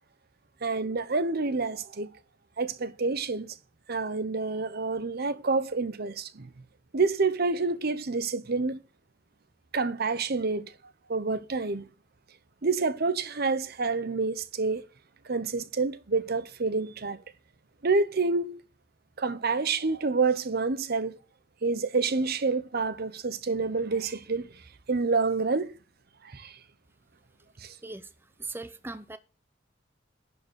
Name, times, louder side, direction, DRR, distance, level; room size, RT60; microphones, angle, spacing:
voice 1, 0.6-2.1 2.6-3.5 3.9-6.5 6.9-8.8 9.7-10.6 11.1-11.8 12.6-14.9 15.2-17.2 17.8-18.6 19.2-21.2 21.6-24.5 24.9-25.8 26.2-26.6 27.6-27.7, right 4 dB, 55° right, 0.8 m, -28 dB
voice 2, 27.8-29.2, right 2 dB, 10° right, 0.6 m, -40 dB
11.5 x 4.8 x 6.6 m
head